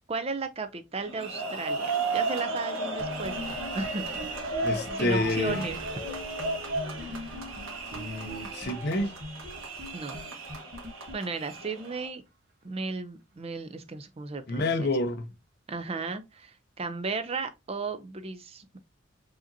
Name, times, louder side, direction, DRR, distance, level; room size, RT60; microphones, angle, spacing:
voice 1, 0.1-4.3 4.9-5.8 9.9-10.2 11.1-12.2 12.6-14.9 15.7-18.8, right 4 dB, 30° right, 0.5 m, -35 dB
sound 1, 1.0-12.1, right 3 dB, 85° right, 1.3 m, -34 dB
sound 2, 3.0-11.8, left 1 dB, 45° right, 1.2 m, -42 dB
voice 2, 4.6-5.7 7.9-9.1 14.5-15.3, left 2 dB, 55° left, 0.6 m, -29 dB
4.9 x 2.9 x 2.6 m
head